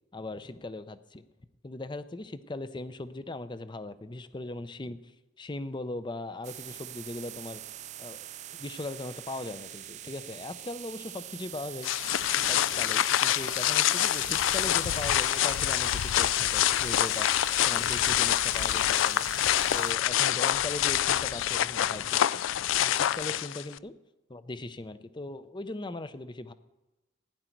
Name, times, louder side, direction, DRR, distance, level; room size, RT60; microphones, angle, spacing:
voice 1, 0.1-1.2 1.6-5.1 5.4-7.6 8.0-11.9 12.4-17.3 17.6-19.2 19.7-22.4 22.8-23.9 24.3-26.5, left 2 dB, 25° left, 13 dB, 0.6 m, -39 dB
sound 1, 6.4-19.9, right 12 dB, 35° right, 0.3 m, -43 dB
sound 2, 11.8-23.8, left 12 dB, 75° left, 0.3 m, -26 dB
16.0 x 10.0 x 4.6 m, 1.0 s
head